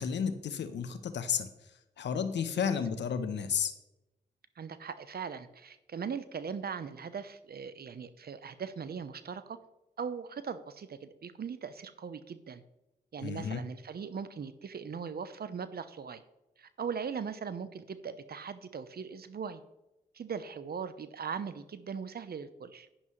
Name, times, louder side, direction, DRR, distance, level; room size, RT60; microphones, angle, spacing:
voice 1, 0.0-1.5 2.0-3.7 13.2-13.6, left 7 dB, 75° left, 10 dB, 0.9 m, -32 dB
voice 2, 4.6-9.6 10.0-12.6 13.1-16.2 16.6-19.6 20.1-22.9, right 6 dB, 60° right, 13 dB, 0.8 m, -39 dB
10.5 x 10.0 x 3.2 m, 0.96 s
supercardioid pair, 40°, 18 cm